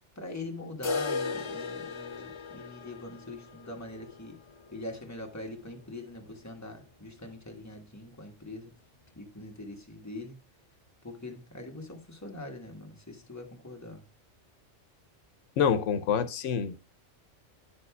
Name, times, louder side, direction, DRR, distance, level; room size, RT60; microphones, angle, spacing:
voice 1, 0.1-4.4 4.7-8.7 9.1-10.4 11.0-14.1, left 2 dB, 15° left, 1.3 m, -42 dB
sound 1, 0.8-6.6 6.9-7.0 7.4-7.5 8.0-8.1 9.0-9.1, left 4 dB, 35° left, 0.5 m, -38 dB
voice 2, 15.6-16.8, left 7 dB, 85° left, 1.0 m, -26 dB
9.8 x 6.4 x 2.3 m
omnidirectional pair, 1.2 m